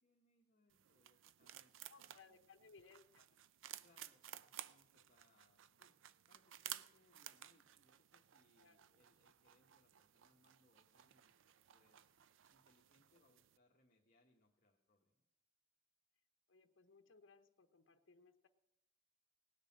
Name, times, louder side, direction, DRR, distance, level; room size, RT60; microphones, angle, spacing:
voice 1, 0.0-2.5 3.8-6.0 6.3-11.4 11.7-12.2 12.5-15.2, left 1 dB, 45° left, -2 dB, 1.3 m, -76 dB
sound 1, 0.7-13.6, right 12 dB, 90° right, 0.5 m, -56 dB
voice 2, 1.9-3.4 8.6-8.8 16.5-18.5, left 4 dB, 85° left, 7 dB, 0.8 m, -65 dB
18.0 x 6.6 x 7.4 m, 0.87 s
head